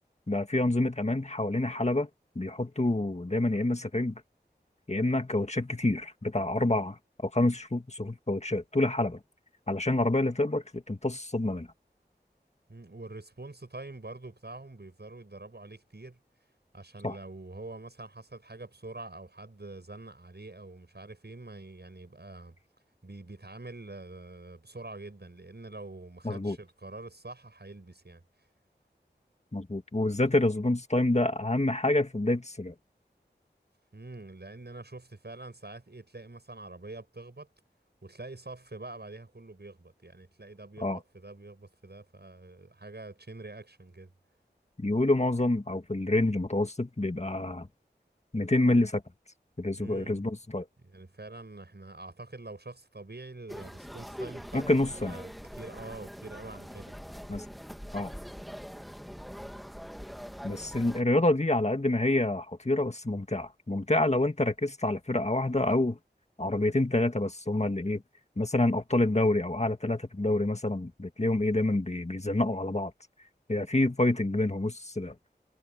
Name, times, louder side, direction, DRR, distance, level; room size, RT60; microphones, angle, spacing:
voice 1, 0.3-2.1 2.4-4.2 4.9-7.0 7.2-9.2 9.7-11.7 17.0-17.1 26.2-26.6 29.5-32.7 40.8-41.0 44.8-47.7 48.3-49.0 49.6-50.7 54.5-55.2 57.3-57.4 57.9-58.1 60.4-66.0 66.4-68.0 68.4-72.9 73.5-75.1, left 2 dB, 40° left, 1.9 m, -27 dB
voice 2, 12.7-16.2 16.7-22.6 23.0-28.2 33.9-37.5 38.0-44.1 49.8-50.2 50.8-56.9, right 2 dB, 65° right, 7.9 m, -45 dB
sound 1, 53.5-61.0, equal, ahead, 1.6 m, -43 dB
wide cardioid pair, 40°, 18 cm